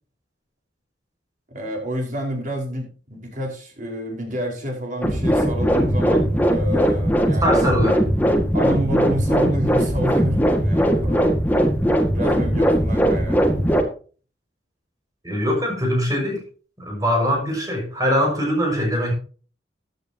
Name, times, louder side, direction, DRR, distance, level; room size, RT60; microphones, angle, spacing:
voice 1, 1.5-7.7 8.5-11.4 12.1-13.9, equal, 45° right, 1 dB, 4.9 m, -29 dB
sound 1, 5.0-13.8, equal, 10° left, 1.9 m, -19 dB
voice 2, 7.4-8.0 15.2-16.4 16.8-19.1, equal, 20° right, 1 dB, 5.8 m, -22 dB
15.0 x 10.5 x 2.9 m, 0.38 s
head